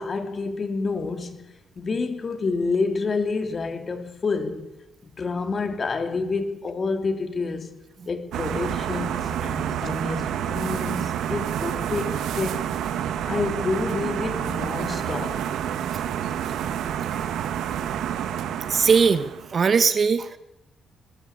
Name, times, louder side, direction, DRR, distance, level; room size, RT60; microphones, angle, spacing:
voice 1, 0.0-1.4 1.8-4.6 5.0-7.7 8.1-12.6 13.2-15.4, left 4 dB, 40° left, 3.1 m, -28 dB
sound 1, 8.3-19.6, right 9 dB, 80° right, 1.5 m, -28 dB
voice 2, 18.7-20.4, right 5 dB, 45° right, 1.2 m, -20 dB
21.0 x 13.0 x 9.6 m
cardioid pair, 90°, 0 cm